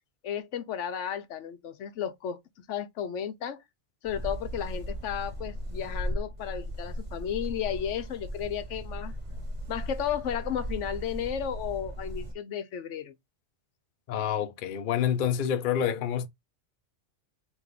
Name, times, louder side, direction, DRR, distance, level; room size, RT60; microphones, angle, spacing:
voice 1, 0.2-2.4 2.7-3.6 4.0-9.1 9.7-13.1, left 9 dB, 75° left, 1.0 m, -33 dB
sound 1, 4.0-12.3, equal, 30° right, 1.0 m, -37 dB
voice 2, 14.1-16.3, left 9 dB, 55° left, 0.6 m, -27 dB
3.3 x 3.0 x 3.6 m
omnidirectional pair, 1.3 m